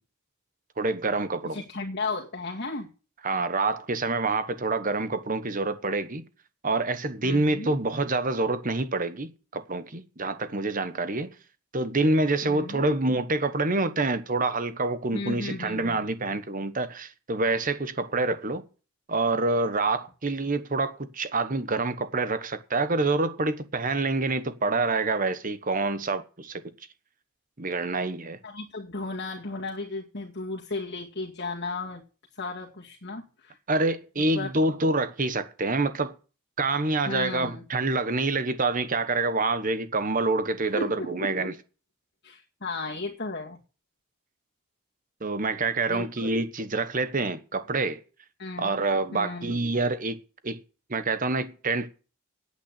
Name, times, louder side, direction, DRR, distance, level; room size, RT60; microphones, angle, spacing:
voice 1, 0.8-1.6 3.2-6.2 6.6-11.3 11.7-18.6 19.1-26.6 27.6-28.4 33.7-36.2 36.6-41.5 45.2-48.0 48.6-50.2 50.4-50.6 50.9-51.9, right 3 dB, 40° right, 1.2 m, -27 dB
voice 2, 1.5-2.9 7.2-7.7 12.4-12.8 15.1-16.0 28.4-32.0 32.3-33.6 34.2-34.5 37.1-37.6 40.7-41.5 42.2-43.6 45.9-46.3 48.4-48.8 49.1-49.5, left 3 dB, 50° left, 2.2 m, -35 dB
9.5 x 8.9 x 9.9 m
head